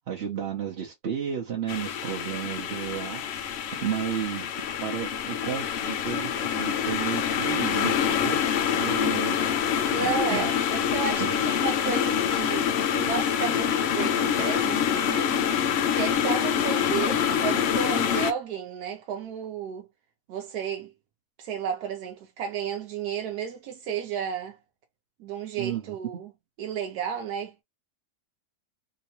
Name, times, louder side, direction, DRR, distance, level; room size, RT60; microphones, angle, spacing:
voice 1, 0.1-3.2 3.8-4.5 4.8-9.4 10.0-10.5 11.2-11.3 25.6-26.2, right 9 dB, 50° right, 0.9 m, -33 dB
sound 1, 1.7-18.3, left 8 dB, 70° left, 0.6 m, -26 dB
voice 2, 9.9-15.4 15.9-19.9 20.3-20.9 21.4-24.6 25.2-26.3 26.6-27.6, right 7 dB, 85° right, 1.1 m, -33 dB
2.9 x 2.8 x 2.8 m
omnidirectional pair, 1.6 m